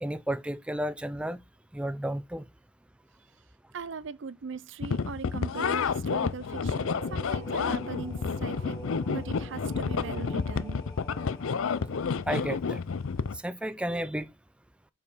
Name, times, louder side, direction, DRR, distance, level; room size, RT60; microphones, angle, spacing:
voice 1, 0.0-1.4 1.7-2.5 12.3-12.8 13.3-14.3, right 1 dB, 5° right, 0.4 m, -32 dB
voice 2, 3.7-8.8 9.1-10.8, right 5 dB, 60° right, 0.5 m, -40 dB
sound 1, 4.8-13.4, left 5 dB, 75° left, 0.5 m, -30 dB
sound 2, 6.7-12.2, right 1 dB, 15° left, 1.7 m, -45 dB
6.8 x 5.3 x 4.1 m
head